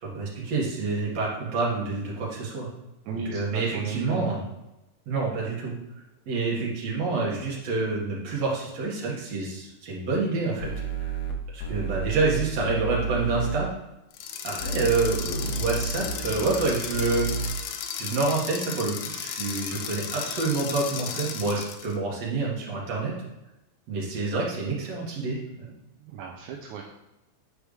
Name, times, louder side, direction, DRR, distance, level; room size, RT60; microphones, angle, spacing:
voice 1, 0.0-2.7 3.1-4.4 5.1-5.7 6.3-10.7 11.0-11.1 11.5-13.7 14.4-17.3 18.0-23.1 23.9-25.7, right 3 dB, 60° right, -4 dB, 2.9 m, -28 dB
voice 2, 3.1-4.3 26.1-26.8, right 5 dB, 80° right, -1 dB, 2.1 m, -34 dB
sound 1, 10.6-11.3 11.6-13.6 14.6-16.7 16.9-17.5, right 3 dB, 65° left, 1.9 m, -31 dB
sound 2, 14.1-21.9, left 8 dB, 85° left, 1.4 m, -35 dB
9.5 x 4.8 x 3.3 m, 0.94 s
omnidirectional pair, 3.5 m